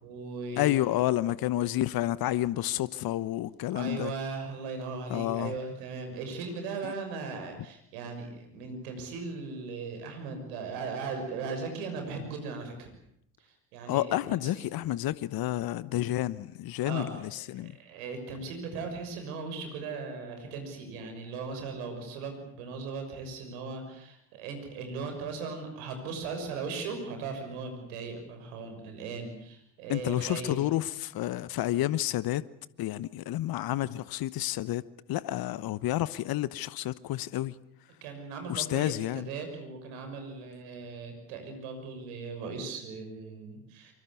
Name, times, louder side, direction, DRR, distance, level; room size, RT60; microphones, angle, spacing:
voice 1, 0.0-1.0 3.7-12.9 13.7-14.5 16.9-30.6 38.0-43.9, right 4 dB, 75° right, 6.3 m, -38 dB
voice 2, 0.6-4.1 5.1-5.5 6.8-6.9 13.9-17.7 29.9-32.4 32.8-37.5 38.5-39.3, left 14 dB, 55° left, 1.0 m, -30 dB
25.0 x 23.5 x 8.4 m
hypercardioid pair, 55°, 44 cm